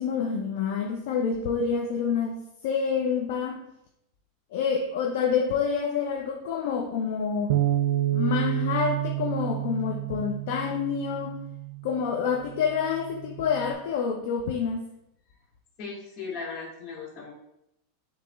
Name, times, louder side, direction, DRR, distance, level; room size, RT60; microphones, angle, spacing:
voice 1, 0.0-2.4 2.6-3.7 4.5-7.5 8.1-11.4 11.8-14.8, left 6 dB, 70° left, 2 dB, 0.5 m, -27 dB
Bass guitar, 7.5-11.9 12.6-13.7, right 14 dB, 75° right, 0.3 m, -29 dB
voice 2, 15.8-17.3, left 4 dB, 50° left, -2 dB, 1.7 m, -37 dB
7.1 x 2.9 x 2.3 m, 0.80 s
hypercardioid pair, 115°, 0 cm